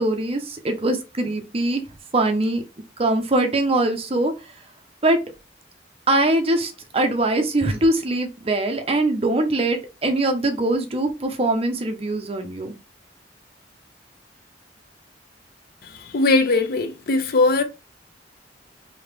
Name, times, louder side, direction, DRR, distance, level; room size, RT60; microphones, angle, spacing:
voice 1, 0.0-1.8 2.1-2.6 3.0-4.3 5.0-5.2 6.1-12.7, right 2 dB, 30° right, 0.6 m, -22 dB
voice 2, 15.8-17.6, left 3 dB, 55° left, 0.5 m, -20 dB
3.2 x 2.8 x 3.3 m
head